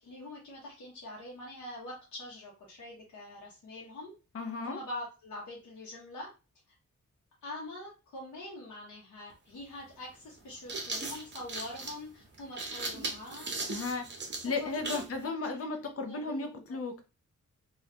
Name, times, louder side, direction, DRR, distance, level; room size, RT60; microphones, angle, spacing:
voice 1, 0.0-4.1 4.6-6.3 7.4-13.7 14.6-14.8 15.1-16.8, left 1 dB, 90° left, -4 dB, 0.9 m, -44 dB
voice 2, 4.3-4.8 13.7-14.1 14.4-17.1, left 3 dB, 50° left, 5 dB, 0.6 m, -35 dB
sound 1, 9.3-9.4 10.4-15.1, right 3 dB, 40° right, 0.7 m, -38 dB
3.3 x 2.3 x 2.7 m, 0.30 s
wide cardioid pair, 165°, 29 cm